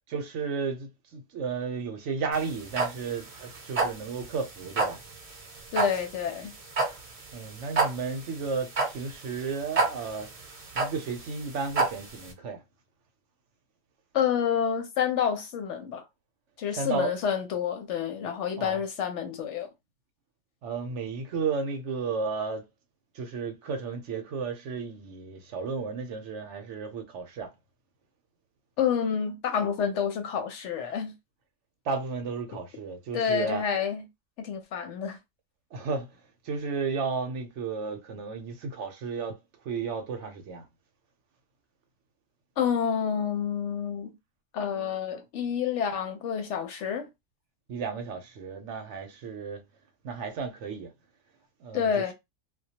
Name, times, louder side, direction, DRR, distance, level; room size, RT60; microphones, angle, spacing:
voice 1, 0.1-5.0 7.3-10.3 10.7-12.6 16.7-17.1 18.6-18.8 20.6-22.7 23.1-27.5 31.8-33.6 35.7-40.7 47.7-49.6 50.0-50.9 51.6-52.1, right 5 dB, 65° right, 0.9 m, -33 dB
sound 1, 2.3-12.3, right 3 dB, 40° right, 0.5 m, -30 dB
voice 2, 5.7-6.5 14.1-16.0 16.6-19.7 28.8-31.1 33.1-34.1 34.4-35.2 42.6-44.2 44.5-47.1 51.7-52.1, left 7 dB, 70° left, 0.8 m, -28 dB
2.2 x 2.2 x 2.7 m
omnidirectional pair, 1.4 m